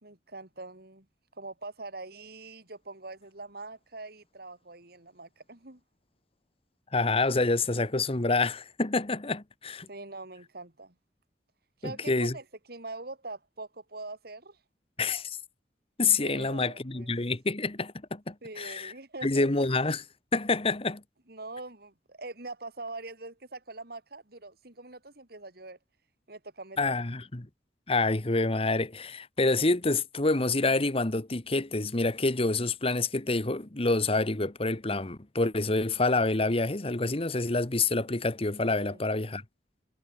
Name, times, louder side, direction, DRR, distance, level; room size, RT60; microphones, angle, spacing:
voice 1, 0.0-1.1 1.4-5.8 9.9-11.0 11.8-14.6 16.2-17.1 18.4-19.5 21.3-25.8 26.3-27.1 38.8-39.1, right 2 dB, 60° right, 3.6 m, -43 dB
voice 2, 6.9-9.9 11.8-12.4 15.0-15.4 16.0-18.9 19.2-20.0 20.3-21.0 26.8-27.5 27.9-39.4, left 3 dB, 35° left, 1.4 m, -27 dB
head